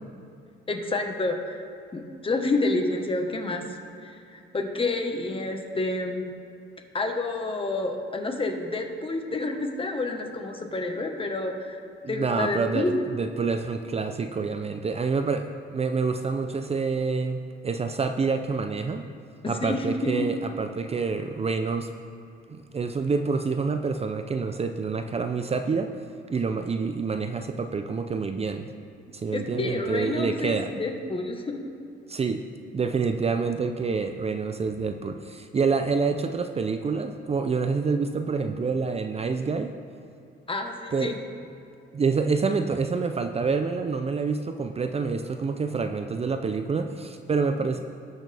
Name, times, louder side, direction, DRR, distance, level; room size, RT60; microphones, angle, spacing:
voice 1, 0.7-1.5 1.9-3.6 4.0-6.3 6.9-11.8 12.1-12.9 19.4-20.2 29.3-31.6 40.5-41.1, left 2 dB, 25° left, 3 dB, 1.4 m, -29 dB
voice 2, 12.0-19.1 19.5-21.9 22.5-25.9 26.3-28.7 29.1-30.7 32.1-32.4 32.7-39.7 40.9-41.1 41.9-47.8, right 4 dB, 30° right, 7 dB, 0.6 m, -27 dB
18.5 x 6.5 x 3.5 m, 2.6 s
cardioid pair, 90°, 20 cm